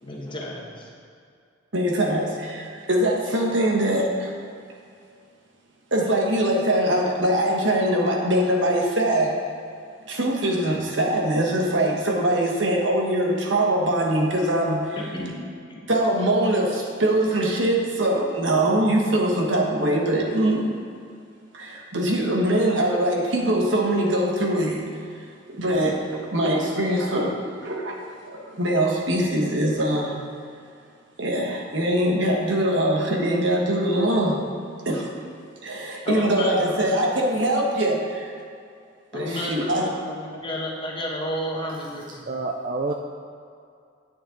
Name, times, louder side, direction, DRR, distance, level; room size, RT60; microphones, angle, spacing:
voice 1, 0.0-0.9 14.9-15.4 15.7-15.8 36.0-37.2 39.1-42.2, left 1 dB, 25° left, -2 dB, 1.4 m, -32 dB
voice 2, 1.7-4.3 5.9-9.3 10.1-15.0 15.9-20.7 21.5-24.8 25.5-26.0 26.3-28.0 28.3-30.1 31.2-34.4 34.8-35.1 35.6-38.3 39.1-39.8, right 1 dB, 70° right, -1 dB, 1.5 m, -22 dB
voice 3, 42.3-42.9, right 3 dB, 45° right, 2 dB, 0.5 m, -27 dB
10.0 x 8.6 x 3.9 m, 2.4 s
head